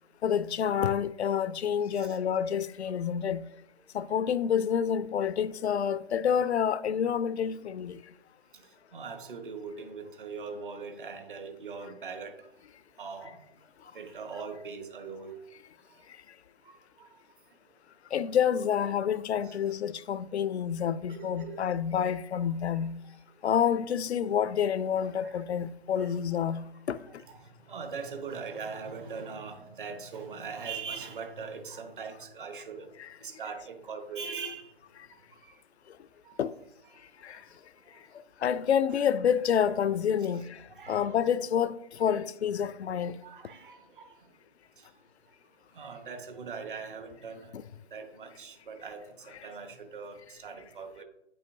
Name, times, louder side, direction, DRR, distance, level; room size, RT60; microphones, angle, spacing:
voice 1, 0.2-3.4 3.9-8.0 18.1-23.0 23.4-27.0 33.0-33.1 36.4-36.5 37.2-37.4 38.4-43.2 47.5-47.6, left 8 dB, 70° left, 0.5 m, -28 dB
voice 2, 8.5-12.5 13.0-13.4 13.9-15.4 16.6-17.1 19.4-19.6 21.1-21.6 22.7-22.8 25.2-25.4 25.9-26.1 27.0-32.9 33.2-34.7 35.3-35.6 36.2-36.4 37.3-37.4 37.8-38.0 40.2-41.2 43.2-44.1 44.8-44.9 45.7-47.5 47.9-51.0, right 5 dB, 50° right, 1.2 m, -41 dB
8.8 x 5.5 x 2.7 m
figure-of-eight pair, 140°, 34 cm